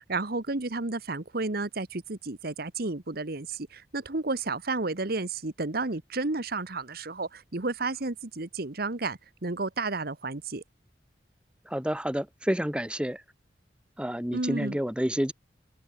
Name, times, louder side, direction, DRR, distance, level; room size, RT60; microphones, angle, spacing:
voice 1, 0.0-10.6 14.3-14.8, right 3 dB, 60° right, 1.5 m, -32 dB
voice 2, 11.7-13.2 14.0-15.3, equal, 5° right, 1.3 m, -29 dB
head